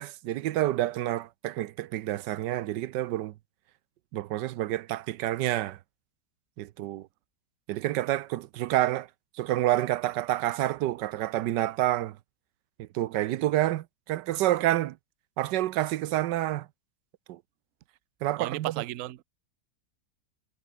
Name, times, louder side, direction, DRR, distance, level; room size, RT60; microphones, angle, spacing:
voice 1, 0.0-3.3 4.1-5.8 6.6-7.1 7.7-9.1 9.4-12.2 12.8-15.0 15.4-16.7 17.3-17.4 18.2-18.7, right 14 dB, 85° right, 1.3 m, -28 dB
voice 2, 18.4-19.2, right 15 dB, 60° right, 0.9 m, -34 dB
omnidirectional pair, 1.8 m